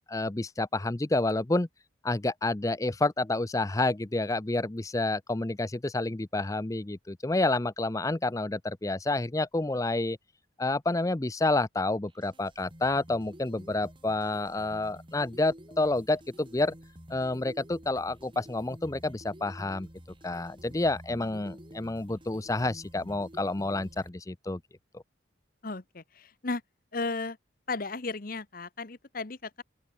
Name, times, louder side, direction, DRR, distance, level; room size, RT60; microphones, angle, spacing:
voice 1, 0.0-1.7 2.0-10.2 10.6-16.7 17.1-19.9 20.2-24.6 24.9-25.0, left 2 dB, 15° left, 0.5 m, -29 dB
sound 1, 12.1-24.1, equal, 25° right, 7.1 m, -50 dB
voice 2, 25.6-26.6 26.9-27.4 27.7-29.6, left 3 dB, 45° left, 1.0 m, -35 dB
open air
head